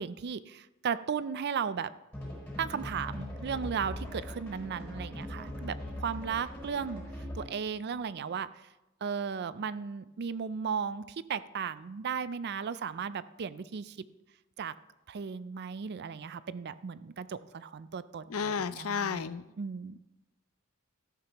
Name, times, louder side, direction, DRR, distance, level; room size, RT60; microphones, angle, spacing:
voice 1, 0.0-1.9 2.6-7.0 7.3-8.7 9.0-14.0 14.6-14.7 15.1-19.3 19.6-20.0, right 6 dB, 50° right, 16 dB, 0.4 m, -36 dB
sound 1, 2.1-7.6, left 1 dB, 5° left, 4.8 m, -40 dB
voice 2, 18.3-19.4, left 6 dB, 75° left, 14 dB, 0.5 m, -32 dB
13.0 x 11.5 x 3.0 m, 1.0 s
head